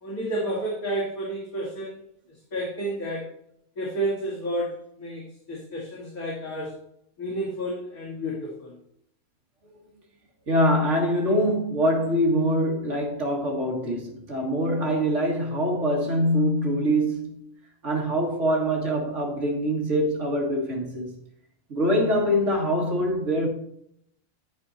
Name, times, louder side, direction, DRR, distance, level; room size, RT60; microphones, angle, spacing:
voice 1, 0.0-2.0 2.3-3.3 3.8-6.8 7.2-8.7, right 1 dB, 75° left, 2.8 m, -31 dB
voice 2, 10.5-17.4 17.8-21.1 21.7-23.5, equal, 55° right, 2.4 m, -24 dB
13.5 x 4.5 x 4.3 m
omnidirectional pair, 1.5 m